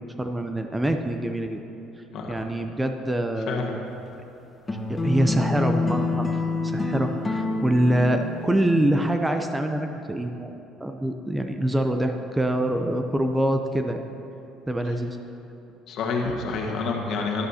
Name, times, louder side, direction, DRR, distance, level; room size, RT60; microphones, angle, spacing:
voice 1, 0.2-1.6 2.0-3.8 4.9-6.3 6.6-10.5 10.8-14.0 14.7-15.2, right 1 dB, 10° right, 5 dB, 0.6 m, -25 dB
sound 1, 4.7-8.8, left 3 dB, 20° left, 1.1 m, -27 dB
voice 2, 15.9-17.5, left 4 dB, 60° left, 0 dB, 1.6 m, -28 dB
12.0 x 11.5 x 2.9 m, 3.0 s
supercardioid pair, 90°, 0 cm